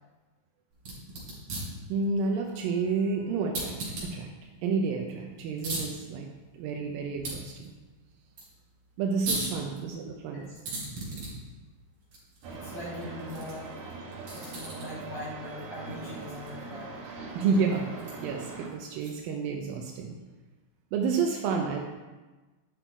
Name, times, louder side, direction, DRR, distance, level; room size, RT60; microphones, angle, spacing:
sound 1, 0.7-19.4, right 2 dB, 40° right, 4.5 m, -41 dB
voice 1, 1.9-4.3 4.6-6.3 6.5-7.7 9.0-10.5 17.4-17.9 18.2-20.2 20.9-21.9, right 5 dB, 90° right, 2 dB, 2.0 m, -30 dB
sound 2, 12.4-18.7, right 3 dB, 65° right, 2.1 m, -41 dB
voice 2, 12.5-13.7 14.3-16.9, left 1 dB, 60° left, -9 dB, 4.8 m, -41 dB
10.5 x 6.0 x 4.5 m, 1.2 s
omnidirectional pair, 5.0 m